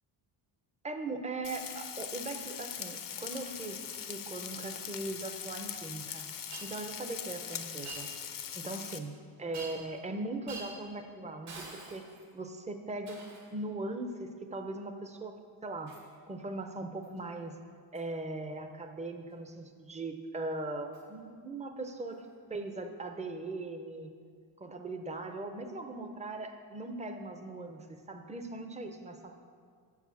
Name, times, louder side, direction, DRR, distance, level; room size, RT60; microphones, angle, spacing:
voice 1, 0.8-6.3 6.6-8.1 8.5-9.1 9.4-12.1 12.3-13.2 13.5-15.4 15.6-16.0 16.3-17.6 17.9-22.2 22.5-24.1 24.6-29.4, right 2 dB, 15° right, 6 dB, 0.5 m, -39 dB
Frying (food), 1.4-9.0, left 8 dB, 45° left, 0.5 m, -41 dB
Shatter, 6.5-6.7 7.9-8.1 9.5-10.0 10.5-10.8 11.5-12.3 13.1-13.5 15.9-16.1 17.0-17.2 17.9-18.1 20.9-21.0 22.1-22.2, right 3 dB, 75° right, 2.1 m, -46 dB
6.6 x 4.9 x 6.9 m, 2.1 s
cardioid pair, 110°, 50 cm